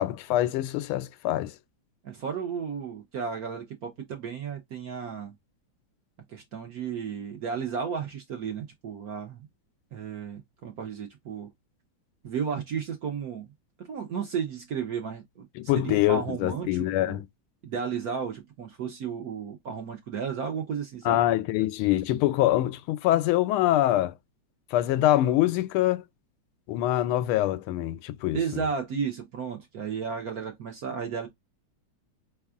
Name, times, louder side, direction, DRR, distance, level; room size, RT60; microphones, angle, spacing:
voice 1, 0.0-1.5 15.6-17.3 21.0-24.1 24.7-26.0 26.7-28.6, left 14 dB, 85° left, 1.5 m, -24 dB
voice 2, 2.0-5.3 6.3-9.5 9.9-11.5 12.2-13.5 13.8-17.2 17.6-21.2 28.3-31.3, right 6 dB, 65° right, 1.0 m, -33 dB
4.7 x 3.4 x 2.3 m
omnidirectional pair, 2.3 m